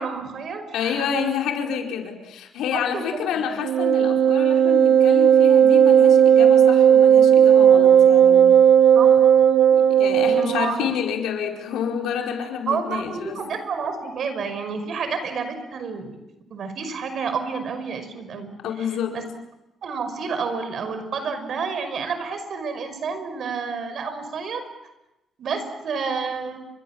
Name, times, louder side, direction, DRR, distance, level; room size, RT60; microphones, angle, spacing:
voice 1, 0.0-1.1 2.7-3.0 3.3-3.4 8.9-9.1 10.2-10.9 12.7-16.2 16.5-18.5 18.8-18.9 19.1-19.2 19.8-24.6 25.4-26.6, right 5 dB, 60° right, 9 dB, 5.5 m, -29 dB
voice 2, 0.7-8.5 9.7-13.4 18.6-19.2, left 7 dB, 85° left, 2 dB, 4.9 m, -28 dB
Wind instrument woodwind instrument, 3.6-10.6, right 9 dB, 75° right, 1.7 m, -14 dB
30.0 x 25.5 x 7.4 m, 0.96 s
cardioid pair, 90°, 0 cm